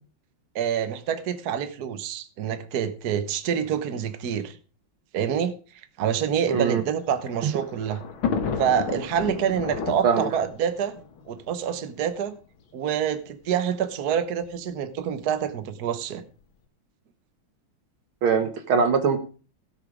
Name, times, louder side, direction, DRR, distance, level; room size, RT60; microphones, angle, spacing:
voice 1, 0.5-4.6 5.1-5.5 6.0-8.0 8.6-10.9 11.3-12.3 12.7-16.2, right 8 dB, 55° right, 1.5 m, -27 dB
voice 2, 6.5-6.8 10.0-10.3 18.2-19.2, right 5 dB, 85° right, 2.4 m, -22 dB
Thunder, 6.8-12.1 12.9-13.0 13.3-13.4 14.4-14.7, left 6 dB, 75° left, 2.2 m, -32 dB
17.0 x 7.0 x 5.0 m
omnidirectional pair, 2.2 m